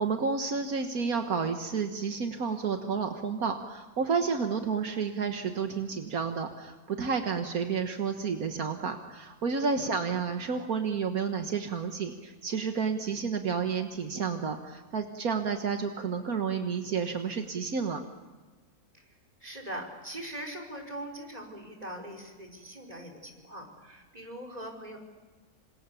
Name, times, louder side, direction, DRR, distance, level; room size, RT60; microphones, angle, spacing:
voice 1, 0.0-18.0, right 5 dB, 75° right, 5 dB, 1.9 m, -31 dB
voice 2, 19.4-25.0, right 1 dB, 25° right, 3 dB, 5.2 m, -41 dB
27.5 x 26.5 x 7.1 m, 1.4 s
omnidirectional pair, 1.5 m